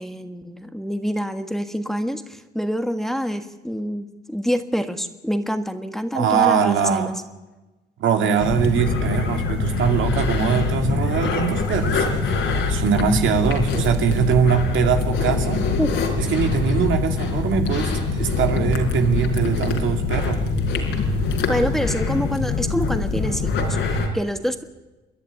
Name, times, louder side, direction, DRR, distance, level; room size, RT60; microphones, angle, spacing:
voice 1, 0.0-7.1 15.8-15.9 21.5-24.6, equal, ahead, 7 dB, 1.5 m, -26 dB
voice 2, 6.1-7.1 8.0-15.6 16.2-20.4, right 7 dB, 75° right, 5 dB, 2.5 m, -22 dB
sound 1, 8.4-24.1, left 4 dB, 75° left, 4.4 m, -24 dB
28.5 x 11.0 x 9.7 m, 1.1 s
cardioid pair, 90°, 20 cm